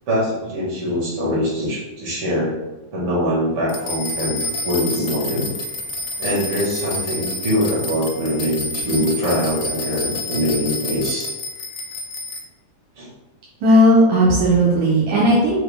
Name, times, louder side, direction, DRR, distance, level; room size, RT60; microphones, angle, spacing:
voice 1, 0.1-2.5 2.9-5.5 6.2-11.3 13.0-13.1, equal, 55° right, -7 dB, 2.2 m, -23 dB
sound 1, 3.7-12.4, left 1 dB, 80° left, 1.7 m, -29 dB
voice 2, 13.6-15.6, equal, 80° right, -5 dB, 2.2 m, -15 dB
6.2 x 2.1 x 3.5 m, 1.0 s
omnidirectional pair, 3.4 m